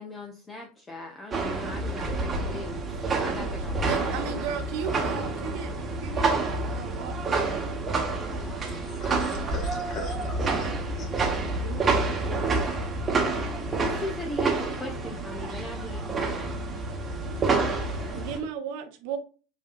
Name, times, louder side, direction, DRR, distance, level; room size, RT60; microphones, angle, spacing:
voice 1, 0.0-4.4 13.8-16.6, left 2 dB, 20° left, 0.6 m, -39 dB
sound 1, 1.3-18.4, right 3 dB, 20° right, 1.1 m, -28 dB
voice 2, 3.9-7.4 10.8-12.8 18.1-19.2, right 7 dB, 50° right, 0.7 m, -36 dB
voice 3, 8.4-10.7 11.0-11.2 13.2-13.8 17.1-18.3, left 3 dB, 35° left, 1.5 m, -43 dB
7.0 x 2.7 x 2.5 m
figure-of-eight pair, 80°, 0 cm